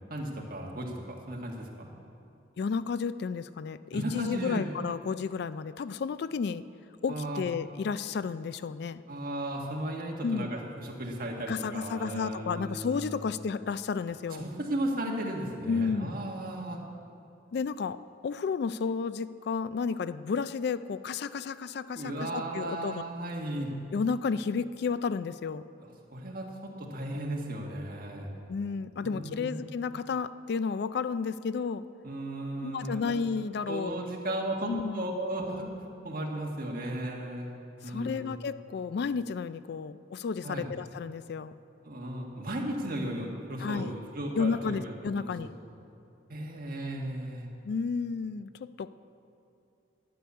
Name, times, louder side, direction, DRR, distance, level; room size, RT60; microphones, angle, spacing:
voice 1, 0.1-1.9 3.9-4.7 7.1-7.5 9.1-13.3 14.3-16.8 21.9-23.8 25.8-28.3 29.0-29.6 32.0-33.3 33.7-35.7 36.0-37.6 37.8-38.3 40.4-40.7 41.8-45.3 46.3-47.5, right 1 dB, 50° right, 0 dB, 1.7 m, -35 dB
voice 2, 2.6-6.6 7.0-9.0 10.2-10.5 11.4-14.4 15.7-16.2 17.5-23.0 23.9-25.6 28.5-31.9 32.6-33.9 34.3-34.4 34.7-35.1 37.8-41.5 43.6-43.9 44.3-45.5 47.6-48.9, left 5 dB, 60° left, 14 dB, 0.3 m, -32 dB
11.5 x 7.0 x 9.5 m, 2.7 s
head